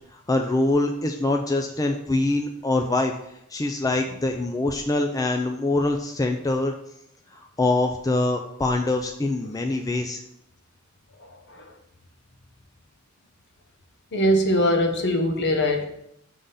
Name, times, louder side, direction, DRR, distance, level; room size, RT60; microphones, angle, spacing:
voice 1, 0.1-3.1 3.5-6.7 7.3-10.2, left 2 dB, 15° left, 4 dB, 0.4 m, -24 dB
voice 2, 11.2-11.7 14.1-15.8, equal, 55° left, 4 dB, 1.0 m, -22 dB
6.5 x 3.7 x 5.6 m, 0.78 s
head